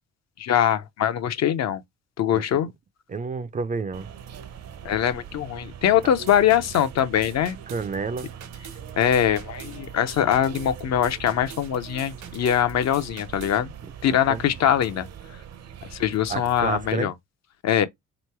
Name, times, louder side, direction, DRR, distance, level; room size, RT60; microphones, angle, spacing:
voice 1, 0.4-1.8 2.2-2.7 4.8-7.6 9.0-13.7 14.0-15.1 15.9-17.1 17.6-17.9, left 10 dB, 60° left, 0.6 m, -22 dB
voice 2, 3.1-4.1 7.7-8.3 14.3-14.4 16.3-17.1, right 4 dB, 25° right, 0.4 m, -29 dB
sound 1, 3.9-16.9, right 8 dB, 60° right, 0.7 m, -41 dB
sound 2, 6.0-13.6, right 8 dB, 75° right, 1.1 m, -46 dB
3.1 x 2.9 x 4.5 m
cardioid pair, 90°, 30 cm